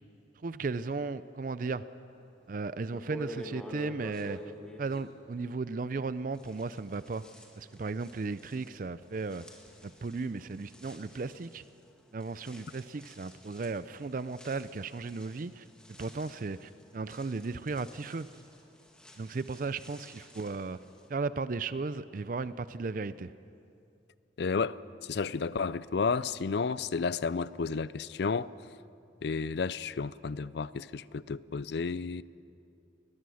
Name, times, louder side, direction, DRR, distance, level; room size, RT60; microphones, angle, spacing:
voice 1, 0.4-1.8 2.5-4.4 4.8-7.2 7.6-9.4 9.8-11.6 12.1-15.6 16.0-18.3 19.2-20.8 21.1-23.3, right 4 dB, 45° right, 0.4 m, -35 dB
sound 1, 2.4-2.5 2.9-6.0 6.3-21.1, equal, 5° left, 1.9 m, -50 dB
voice 2, 24.4-28.5 29.2-32.2, left 5 dB, 60° left, 0.4 m, -32 dB
22.0 x 20.5 x 6.4 m
head